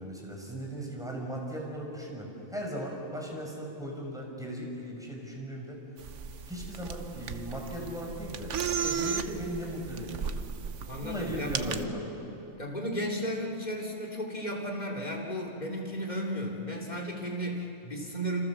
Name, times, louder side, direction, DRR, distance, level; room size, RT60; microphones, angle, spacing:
voice 1, 0.0-5.8 6.5-8.5 8.8-10.4 11.0-12.1, equal, ahead, -1 dB, 5.4 m, -37 dB
sound 1, 6.0-11.8, right 7 dB, 65° right, 1.2 m, -35 dB
voice 2, 10.8-11.8 12.6-18.4, equal, 30° left, -1 dB, 3.4 m, -34 dB
28.0 x 26.0 x 7.3 m, 3.0 s
omnidirectional pair, 1.4 m